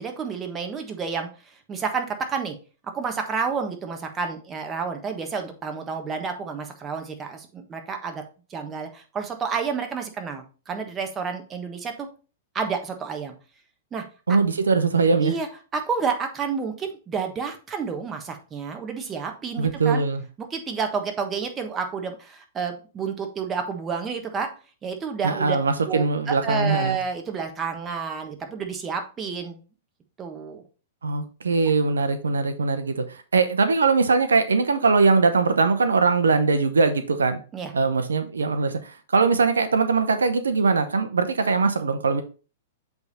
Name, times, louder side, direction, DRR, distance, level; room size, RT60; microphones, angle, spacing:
voice 1, 0.0-2.5 2.9-8.2 8.5-12.1 12.5-13.3 13.9-14.4 15.2-20.0 20.4-24.5 24.8-25.6 25.9-29.6 30.2-30.6 37.5-37.7, right 5 dB, 20° right, 1.3 m, -30 dB
voice 2, 14.3-15.3 19.6-20.2 25.2-27.0 31.0-37.4 37.7-42.2, right 4 dB, 90° right, 0.7 m, -21 dB
8.0 x 3.5 x 4.1 m
hypercardioid pair, 115°, 0 cm